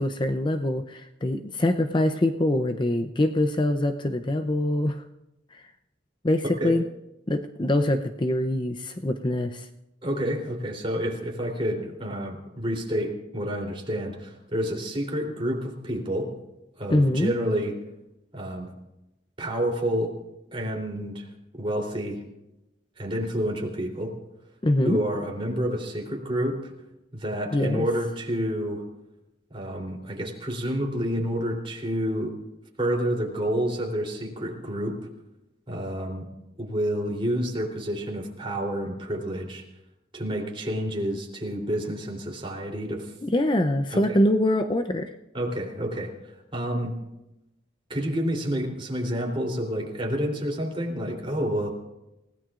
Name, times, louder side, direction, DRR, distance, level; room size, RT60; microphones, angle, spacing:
voice 1, 0.0-5.0 5.5-5.6 6.2-6.8 7.3-9.7 16.9-17.3 24.6-25.0 27.5-27.9 43.2-45.1, left 1 dB, 25° left, 7 dB, 0.6 m, -24 dB
voice 2, 10.0-16.3 16.8-17.7 18.3-18.7 19.4-20.1 20.5-21.3 21.6-22.2 23.0-24.1 24.8-26.6 27.1-28.8 29.5-32.3 32.8-35.0 35.7-36.3 36.6-39.6 40.1-43.1 43.9-44.0 45.3-47.0 47.9-51.7, equal, 30° right, 0 dB, 3.4 m, -29 dB
28.5 x 17.0 x 2.5 m, 0.93 s
head